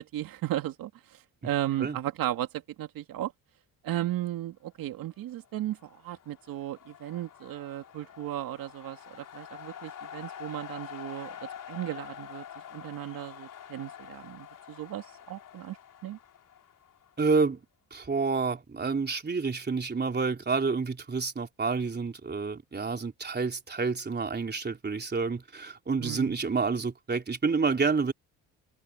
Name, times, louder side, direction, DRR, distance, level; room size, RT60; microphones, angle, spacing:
voice 1, 0.0-3.3 3.8-12.4 12.7-15.8 16.0-16.2 26.0-26.4, right 13 dB, 75° right, 2.4 m, -35 dB
sound 1, 5.4-17.4, left 9 dB, 60° left, 4.1 m, -46 dB
voice 2, 17.2-17.6 17.9-28.1, right 4 dB, 30° right, 3.5 m, -29 dB
supercardioid pair, 75°, 35 cm